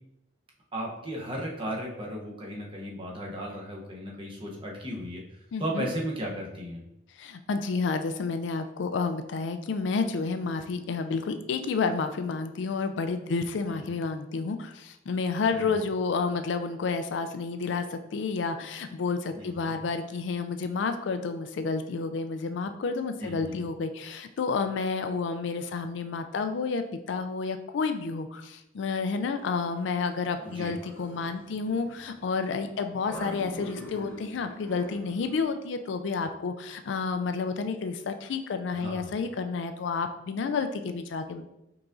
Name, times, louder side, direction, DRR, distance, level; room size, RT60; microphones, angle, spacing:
voice 1, 0.7-5.2 5.6-6.8 13.7-13.8 15.5-15.7 19.4-19.7 23.2-23.6 30.4-30.7 38.7-39.2, equal, 25° right, -1 dB, 0.8 m, -35 dB
voice 2, 5.5-5.9 7.2-41.4, left 4 dB, 70° left, 8 dB, 0.4 m, -30 dB
sound 1, 29.4-35.4, left 1 dB, 10° left, 0.7 m, -45 dB
4.7 x 3.6 x 2.6 m, 0.88 s
head